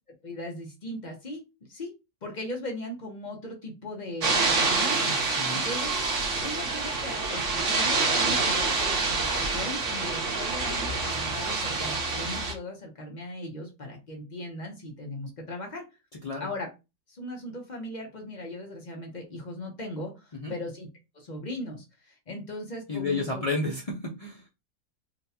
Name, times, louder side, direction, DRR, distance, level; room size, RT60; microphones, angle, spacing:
voice 1, 0.2-1.4 1.7-1.9 2.2-5.9 6.4-15.8 16.4-16.7 17.1-20.9 21.1-23.4, left 1 dB, 40° left, 1 dB, 0.7 m, -38 dB
sound 1, 4.2-12.5, right 3 dB, 55° right, 1.2 m, -27 dB
voice 2, 5.4-5.7 16.2-16.5 20.4-20.6 22.9-24.4, left 3 dB, 75° left, -2 dB, 0.3 m, -31 dB
4.0 x 2.2 x 2.7 m, 0.26 s
omnidirectional pair, 1.6 m